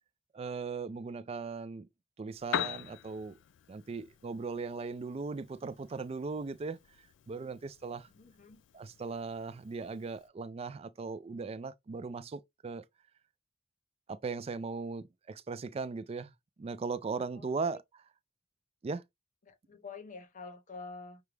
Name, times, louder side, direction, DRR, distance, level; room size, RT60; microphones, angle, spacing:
voice 1, 0.3-1.9 2.2-3.4 3.7-6.8 7.3-8.1 8.7-12.8 14.1-16.3 16.6-17.8 18.8-19.0, right 4 dB, 30° right, 0.3 m, -38 dB
Piano, 2.3-10.3, left 10 dB, 70° left, 0.3 m, -44 dB
voice 2, 8.1-8.6 17.3-17.7 19.4-21.2, left 4 dB, 45° left, 0.8 m, -48 dB
5.9 x 2.2 x 3.2 m
head